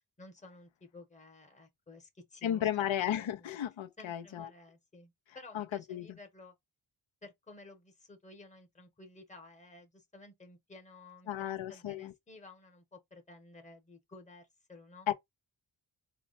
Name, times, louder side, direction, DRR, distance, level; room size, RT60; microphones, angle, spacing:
voice 1, 0.2-3.5 4.0-6.5 7.2-15.1, left 2 dB, 15° left, 1.1 m, -54 dB
voice 2, 2.4-4.5 5.5-6.1 11.3-12.1 15.1-15.2, left 10 dB, 70° left, 0.7 m, -34 dB
4.2 x 2.2 x 4.0 m
wide cardioid pair, 100°, 48 cm